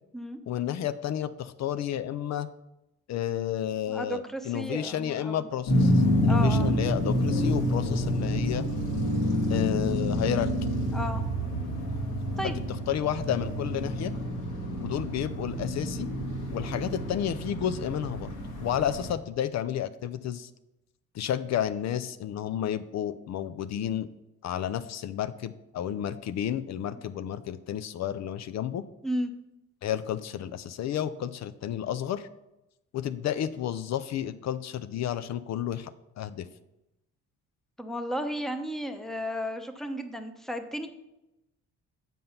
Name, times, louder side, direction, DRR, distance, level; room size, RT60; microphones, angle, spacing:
voice 1, 0.5-2.5 3.1-8.7 9.5-10.5 12.4-12.5 12.9-14.1 14.8-16.1 16.5-18.3 18.6-20.5 21.1-24.1 24.4-28.8 29.8-32.3 32.9-35.9 36.2-36.5, left 10 dB, 65° left, 12 dB, 0.5 m, -31 dB
voice 2, 3.9-5.4 6.3-6.7 10.9-11.2 12.4-12.7 29.0-29.3 37.8-40.9, equal, ahead, 7 dB, 0.8 m, -33 dB
sound 1, 5.7-19.1, equal, 90° left, 2.0 m, -28 dB
7.6 x 5.4 x 5.7 m, 0.93 s
cardioid pair, 90°, 30 cm